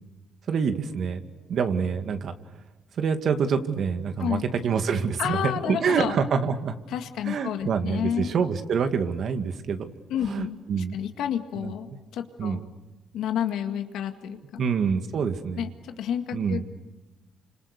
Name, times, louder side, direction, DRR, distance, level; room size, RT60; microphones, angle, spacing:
voice 1, 0.5-2.3 3.0-6.8 7.3-9.9 10.3-11.0 11.6-11.7 12.4-12.6 14.6-15.7 16.3-16.6, right 6 dB, 60° right, 8 dB, 2.1 m, -26 dB
voice 2, 5.2-6.2 6.9-8.3 10.1-12.6 13.1-14.6 15.6-16.6, left 9 dB, 85° left, 6 dB, 2.0 m, -30 dB
29.5 x 26.0 x 6.7 m, 1.1 s
cardioid pair, 90°, 0 cm